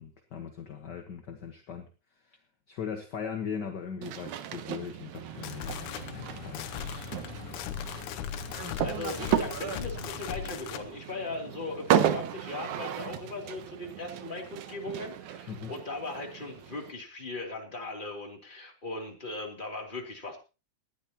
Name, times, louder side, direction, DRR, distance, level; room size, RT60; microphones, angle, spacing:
voice 1, 0.0-1.9 2.3-2.4 2.7-6.8 8.6-8.8 15.5-15.7, left 7 dB, 45° left, 5 dB, 1.5 m, -39 dB
sound 1, 4.0-16.9, right 10 dB, 80° right, 2.4 m, -34 dB
sound 2, 5.2-10.9, left 10 dB, 85° left, 2.3 m, -38 dB
voice 2, 8.8-20.4, left 2 dB, 15° left, 1 dB, 3.0 m, -38 dB
19.5 x 12.5 x 3.0 m, 0.32 s
omnidirectional pair, 3.4 m